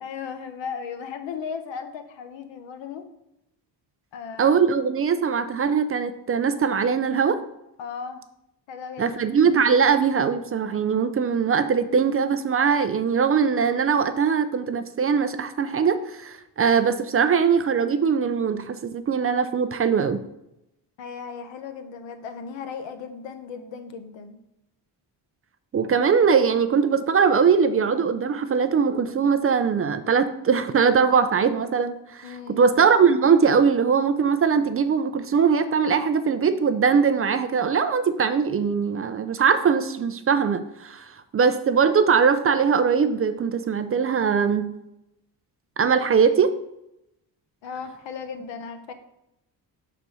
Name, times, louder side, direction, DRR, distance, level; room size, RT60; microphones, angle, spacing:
voice 1, 0.0-3.0 4.1-4.6 7.8-8.2 8.7-9.2 21.0-24.4 32.2-32.7 47.6-48.9, left 6 dB, 85° left, 8 dB, 0.9 m, -36 dB
voice 2, 4.4-7.4 9.0-20.2 25.7-44.7 45.8-46.6, right 6 dB, 35° right, 11 dB, 0.4 m, -21 dB
6.8 x 4.0 x 4.7 m, 0.86 s
cardioid pair, 120°, 43 cm